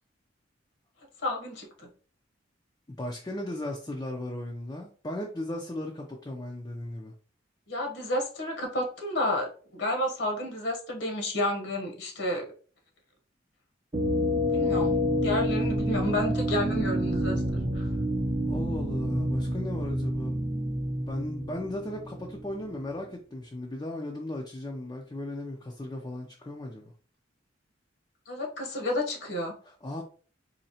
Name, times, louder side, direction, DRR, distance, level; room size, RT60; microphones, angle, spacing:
voice 1, 1.2-1.9 7.7-12.5 14.5-15.0 15.2-17.8 28.3-29.5, left 1 dB, 65° left, 2 dB, 1.0 m, -31 dB
voice 2, 3.0-7.1 18.5-20.4 21.1-26.9 29.6-30.0, left 1 dB, 20° left, 0 dB, 0.5 m, -36 dB
sound 1, 13.9-22.6, equal, 30° right, 0.6 m, -28 dB
4.2 x 2.8 x 2.8 m, 0.41 s
head